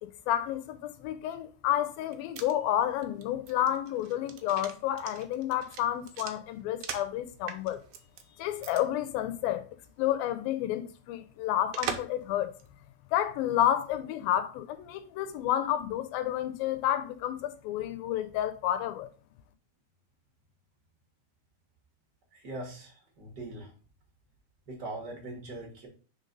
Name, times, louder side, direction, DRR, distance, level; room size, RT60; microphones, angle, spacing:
voice 1, 0.0-7.8 8.4-12.6 13.1-19.1, left 12 dB, 80° left, 2.3 m, -30 dB
sound 1, 1.9-7.2 7.5-8.2 8.6-8.8 9.1-9.2 11.7-12.2 12.6-12.7, right 8 dB, 85° right, 1.6 m, -40 dB
voice 2, 22.3-23.7 24.7-25.9, right 2 dB, 65° right, 1.0 m, -41 dB
5.2 x 3.9 x 5.2 m
omnidirectional pair, 4.3 m